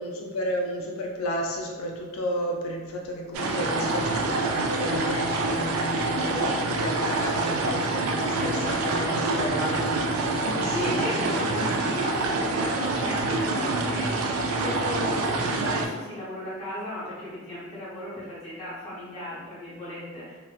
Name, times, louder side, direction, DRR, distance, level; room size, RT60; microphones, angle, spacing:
voice 1, 0.0-10.9, left 1 dB, 80° left, 0 dB, 0.4 m, -32 dB
sound 1, 3.3-15.9, right 2 dB, 90° right, 0.3 m, -26 dB
voice 2, 10.7-20.4, left 1 dB, 30° left, -10 dB, 1.2 m, -35 dB
2.8 x 2.1 x 2.3 m, 1.4 s
head